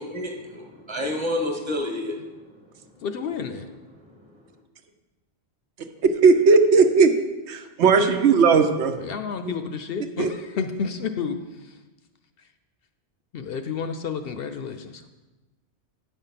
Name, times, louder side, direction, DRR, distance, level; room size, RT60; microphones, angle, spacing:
voice 1, 0.0-2.4 2.6-2.9 3.4-4.3, left 1 dB, 25° right, 2 dB, 1.2 m, -31 dB
voice 2, 3.0-3.7 9.0-11.4 13.3-14.9, left 6 dB, 65° left, 8 dB, 0.7 m, -30 dB
voice 3, 6.0-7.1 7.5-8.9 9.4-9.6 10.2-10.3, right 5 dB, 80° right, 7 dB, 1.0 m, -17 dB
8.7 x 5.4 x 5.7 m, 1.2 s
omnidirectional pair, 1.1 m